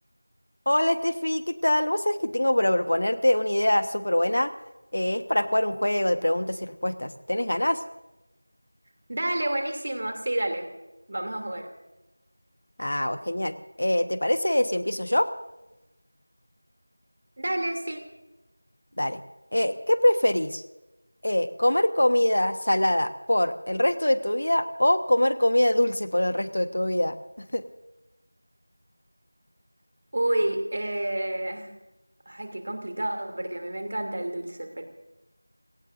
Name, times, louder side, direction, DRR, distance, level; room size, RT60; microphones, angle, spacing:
voice 1, 0.7-4.5 4.9-7.8 12.8-15.3 19.0-19.2 19.5-20.6 21.2-27.6, left 1 dB, 60° left, 11 dB, 1.3 m, -24 dB
voice 2, 9.1-10.7 11.1-11.7 17.4-18.1 30.1-31.7 32.3-34.8, right 1 dB, 40° right, 4 dB, 2.9 m, -29 dB
30.0 x 18.0 x 2.7 m, 1.0 s
figure-of-eight pair, 175°, 0 cm